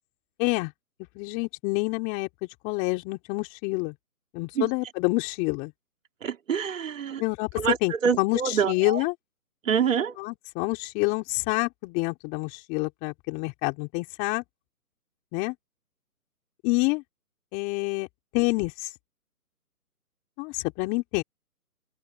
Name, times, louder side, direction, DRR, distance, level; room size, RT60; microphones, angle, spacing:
voice 1, 0.4-0.7 1.1-3.9 4.3-5.7 7.2-9.1 10.2-14.4 15.3-15.5 16.6-17.0 17.5-18.1 18.3-18.9 20.4-21.2, left 26 dB, 20° left, 4.3 m, -27 dB
voice 2, 6.2-7.2 7.6-7.8 8.0-9.0 9.6-10.1, right 7 dB, 55° right, 3.2 m, -26 dB
open air
hypercardioid pair, 155°, 46 cm